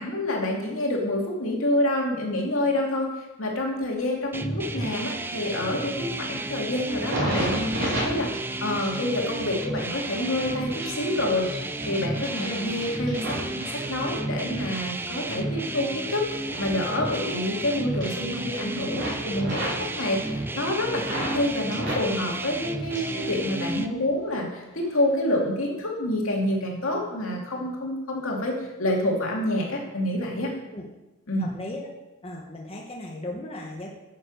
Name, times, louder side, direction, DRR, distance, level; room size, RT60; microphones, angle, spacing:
voice 1, 0.0-13.2 13.5-16.2 16.6-30.5 31.3-31.5, left 1 dB, 75° left, -1 dB, 2.6 m, -28 dB
sound 1, 4.3-23.9, right 2 dB, 10° right, 0.4 m, -32 dB
sound 2, 6.9-14.6 15.0-17.6 17.9-18.6 18.9-21.4 21.7-23.3 23.6-24.3 24.8-25.1, equal, 55° right, 3.6 m, -34 dB
voice 2, 31.4-31.9 32.2-33.9, left 1 dB, 25° left, 0 dB, 1.1 m, -36 dB
9.3 x 7.4 x 6.4 m, 1.0 s
head